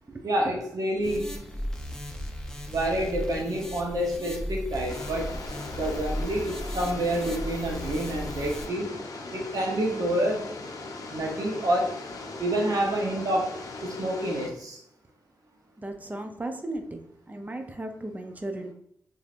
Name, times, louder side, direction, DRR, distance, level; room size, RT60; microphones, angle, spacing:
voice 1, 0.2-1.3 2.7-5.3 5.7-8.9 9.3-10.4 11.1-12.0 12.4-13.5 13.8-14.8, right 1 dB, 65° right, 0 dB, 0.9 m, -28 dB
sound 1, 1.0-8.7, equal, 10° left, 0.7 m, -36 dB
sound 2, 4.9-14.5, left 3 dB, 60° left, 0.6 m, -39 dB
voice 2, 15.8-17.0 17.3-18.7, right 1 dB, 25° right, 5 dB, 0.6 m, -36 dB
3.1 x 2.6 x 2.5 m, 0.70 s
supercardioid pair, 45°, 7 cm